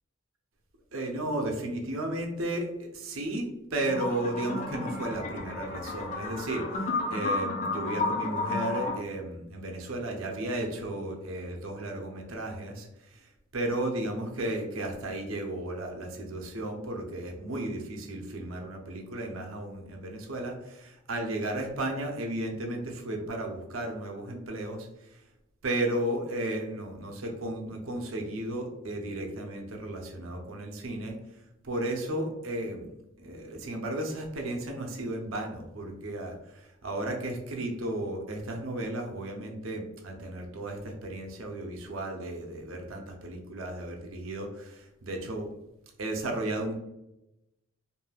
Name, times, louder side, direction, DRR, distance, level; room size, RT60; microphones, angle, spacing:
voice 1, 0.9-25.2 25.6-31.2 31.6-32.9 33.2-45.5 46.0-46.7, right 1 dB, 75° right, 2 dB, 0.6 m, -34 dB
sound 1, 3.9-9.0, left 3 dB, 35° left, 0.4 m, -32 dB
3.3 x 2.6 x 2.2 m, 0.90 s
head